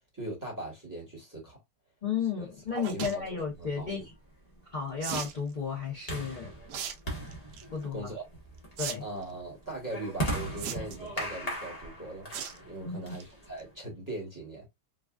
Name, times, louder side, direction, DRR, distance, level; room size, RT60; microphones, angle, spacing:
voice 1, 0.1-1.6 2.4-4.1 7.9-8.2 9.0-12.3 12.6-14.7, right 2 dB, 10° right, 1.1 m, -40 dB
voice 2, 2.0-4.0 4.7-6.5 7.7-8.1 8.8-9.0 12.8-13.2, left 6 dB, 45° left, 0.6 m, -33 dB
sound 1, 2.8-3.2 5.0-5.4 6.7-6.9 7.3-7.6 8.8-8.9 9.2-9.3 10.6-11.1 12.3-12.6 13.0-13.2 13.6-13.7 13.9-14.0, right 8 dB, 70° right, 1.0 m, -36 dB
sound 2, 3.4-13.8, right 1 dB, 25° left, 1.0 m, -39 dB
3.9 x 2.4 x 2.3 m
omnidirectional pair, 2.2 m